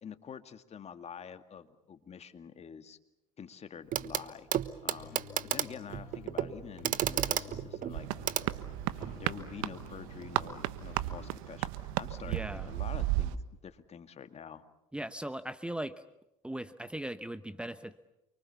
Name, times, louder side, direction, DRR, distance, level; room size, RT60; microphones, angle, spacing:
voice 1, 0.0-3.0 3.4-4.5 4.8-8.1 8.3-8.6 9.1-14.7, left 7 dB, 40° left, 9 dB, 2.1 m, -47 dB
Clock, 3.9-4.2 4.5-9.2 10.4-10.5, right 11 dB, 55° right, 1.2 m, -33 dB
sound 1, 5.0-11.3, left 9 dB, 75° left, 3.6 m, -52 dB
sound 2, 7.9-13.4, right 15 dB, 80° right, 1.2 m, -35 dB
voice 2, 12.3-12.7 14.9-16.0 16.4-18.1, right 1 dB, 5° right, 12 dB, 1.0 m, -39 dB
29.0 x 24.0 x 7.1 m, 0.88 s
hypercardioid pair, 75°, 17 cm